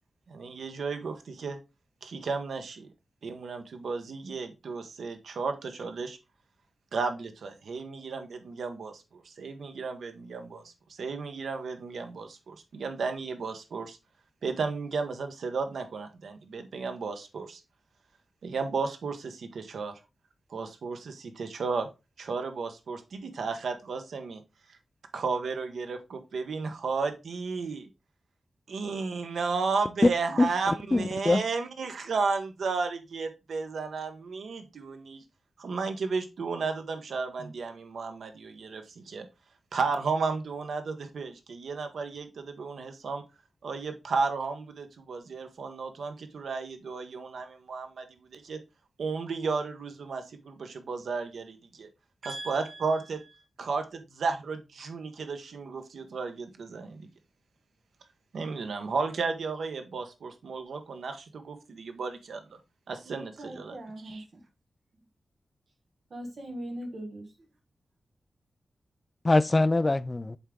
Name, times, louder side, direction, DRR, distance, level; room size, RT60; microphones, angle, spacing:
voice 1, 0.3-1.6 2.0-2.9 3.2-6.2 6.9-10.6 11.0-14.0 14.4-17.6 18.4-19.9 20.5-21.9 22.2-24.4 25.1-27.9 28.7-35.2 35.6-39.2 39.7-43.2 43.6-48.0 48.3-48.6 49.0-51.9 52.3-53.2 53.6-57.0 58.3-62.4 62.9-63.8 64.1-64.2, right 4 dB, 90° right, 1.0 m, -33 dB
voice 2, 30.4-31.4 69.2-70.4, left 2 dB, 25° left, 0.4 m, -23 dB
voice 3, 52.2-53.3 63.0-64.4 66.1-67.3, right 1 dB, 55° right, 1.5 m, -41 dB
8.2 x 3.6 x 3.6 m
wide cardioid pair, 130°, 0 cm